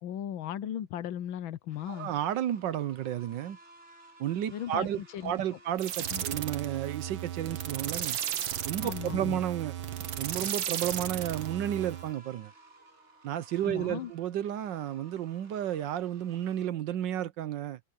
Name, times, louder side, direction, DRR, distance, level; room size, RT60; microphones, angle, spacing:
voice 1, 0.0-2.1 4.5-5.3 6.1-6.4 8.8-9.4 13.7-14.1, left 10 dB, 90° left, 1.6 m, -37 dB
sound 1, 1.7-16.7, right 1 dB, 35° right, 2.4 m, -57 dB
voice 2, 1.9-3.6 4.2-8.2 8.7-9.7 10.2-12.5 13.2-17.8, right 11 dB, 70° right, 1.4 m, -32 dB
sound 2, 5.8-12.1, right 10 dB, 85° right, 1.9 m, -35 dB
omnidirectional pair, 2.1 m